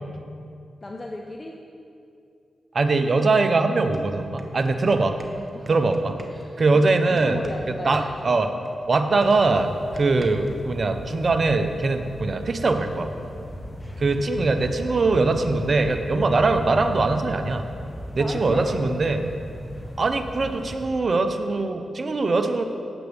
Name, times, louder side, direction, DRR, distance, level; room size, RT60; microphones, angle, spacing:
voice 1, 0.8-1.7 5.4-6.8 7.1-8.1 18.1-18.7, left 2 dB, 35° left, 0 dB, 0.9 m, -36 dB
voice 2, 2.7-5.1 5.7-6.1 6.6-7.4 7.8-8.5 8.9-13.1 14.0-17.6 18.2-19.2 20.0-22.6, right 3 dB, 55° right, 6 dB, 1.0 m, -22 dB
sound 1, 3.4-3.5 3.8-7.6 7.9-10.6, right 1 dB, 35° right, 1.4 m, -42 dB
sound 2, 9.2-20.9, equal, 20° left, 2.5 m, -37 dB
17.5 x 8.2 x 3.6 m, 2.5 s
supercardioid pair, 45°, 0 cm